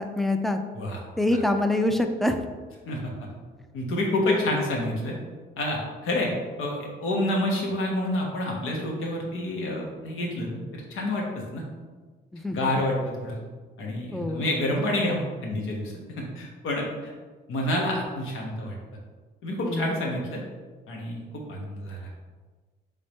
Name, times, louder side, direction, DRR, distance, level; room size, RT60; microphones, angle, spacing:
voice 1, 0.0-0.6 1.2-2.4 12.3-12.7 14.1-14.5 19.6-19.9, left 1 dB, ahead, 6 dB, 0.4 m, -25 dB
voice 2, 3.7-5.1 5.6-6.3 6.6-11.6 12.5-13.4 13.8-17.1 17.5-18.8 19.4-20.4 20.9-22.0, left 1 dB, 85° left, -1 dB, 1.1 m, -28 dB
3.7 x 3.3 x 4.1 m, 1.4 s
cardioid pair, 90°, 20 cm